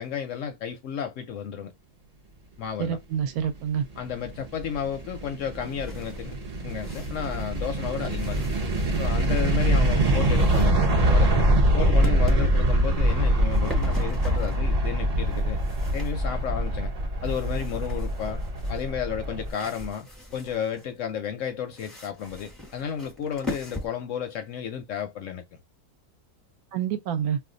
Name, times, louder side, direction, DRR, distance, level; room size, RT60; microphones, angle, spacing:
voice 1, 0.0-1.7 2.6-3.0 4.0-8.4 9.0-11.5 11.7-15.6 15.9-16.9 17.2-18.4 18.7-25.4, left 8 dB, 70° left, 0.8 m, -32 dB
voice 2, 2.8-3.9 9.7-10.1 26.7-27.4, right 8 dB, 75° right, 1.0 m, -28 dB
sound 1, 4.0-19.5, right 1 dB, 55° right, 0.4 m, -24 dB
sound 2, 5.4-7.6 8.0-9.2 9.7-10.7 11.1-11.6 12.0-12.4 13.2-14.7 15.2-16.4 17.2-20.9 21.7-23.9, left 1 dB, ahead, 0.7 m, -41 dB
2.5 x 2.3 x 3.7 m
omnidirectional pair, 1.6 m